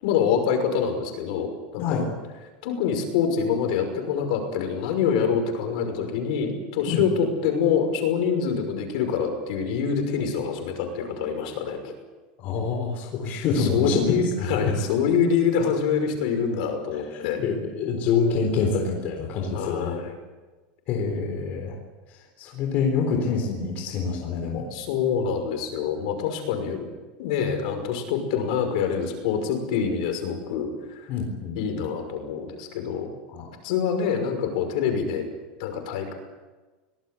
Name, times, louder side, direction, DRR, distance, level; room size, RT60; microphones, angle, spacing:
voice 1, 0.0-2.1 2.6-11.9 13.6-17.4 19.5-20.1 24.7-26.9 27.2-31.1 31.5-33.1 33.6-35.3 35.6-36.1, left 6 dB, 60° left, 6 dB, 5.9 m, -25 dB
voice 2, 12.4-14.0 14.4-14.8 17.1-20.0 20.9-21.7 22.4-24.7 31.1-31.9 33.3-33.5, left 5 dB, 35° left, 2 dB, 3.8 m, -26 dB
24.0 x 19.0 x 8.3 m, 1.2 s
supercardioid pair, 175°, 5 cm